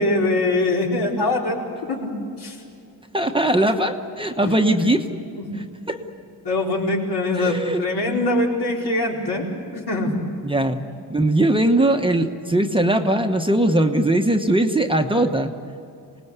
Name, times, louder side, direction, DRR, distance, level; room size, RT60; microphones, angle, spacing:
voice 1, 0.0-1.6 1.9-2.1 2.4-2.6 4.4-4.9 5.4-5.5 6.4-9.4 9.7-10.2, left 2 dB, 70° left, -2 dB, 4.7 m, -23 dB
voice 2, 3.1-5.1 5.9-6.0 7.4-7.8 10.4-10.8 11.1-15.5, right 1 dB, 15° right, 4 dB, 1.0 m, -20 dB
26.5 x 19.5 x 8.2 m, 2.5 s
wide cardioid pair, 150°, 41 cm